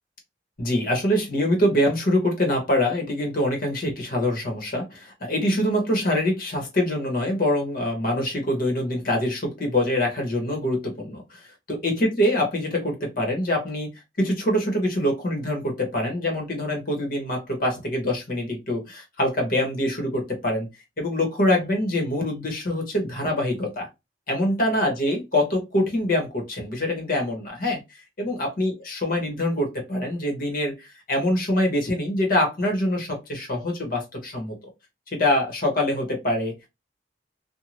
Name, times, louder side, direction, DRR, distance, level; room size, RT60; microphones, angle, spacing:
voice 1, 0.6-11.4 11.7-13.9 14.2-20.7 21.0-23.9 24.3-27.8 28.2-34.6 35.1-36.7, left 1 dB, 55° left, 2 dB, 1.1 m, -24 dB
2.7 x 2.2 x 3.0 m, 0.23 s
head